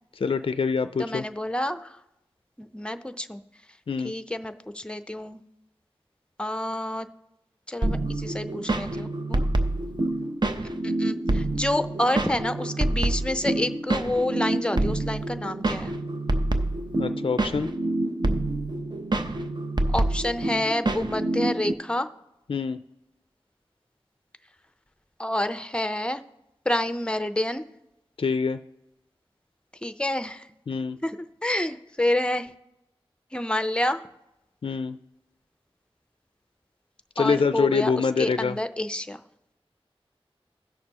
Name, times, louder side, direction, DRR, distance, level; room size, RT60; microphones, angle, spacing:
voice 1, 0.2-1.2 3.9-4.1 17.0-17.7 22.5-22.8 28.2-28.6 30.7-31.0 34.6-35.0 37.2-38.6, left 5 dB, 60° left, 11 dB, 0.3 m, -25 dB
voice 2, 1.0-2.0 2.6-3.4 4.0-5.4 6.4-7.1 7.7-9.5 10.6-15.9 19.9-22.1 25.2-26.2 26.7-27.6 29.8-30.5 31.0-31.2 31.4-32.5 33.3-34.1 37.2-39.2, left 1 dB, 10° left, 10 dB, 0.6 m, -28 dB
sound 1, 7.8-21.7, right 2 dB, 45° right, 0.7 m, -27 dB
16.5 x 6.5 x 2.9 m, 0.89 s
wide cardioid pair, 45°, 10 cm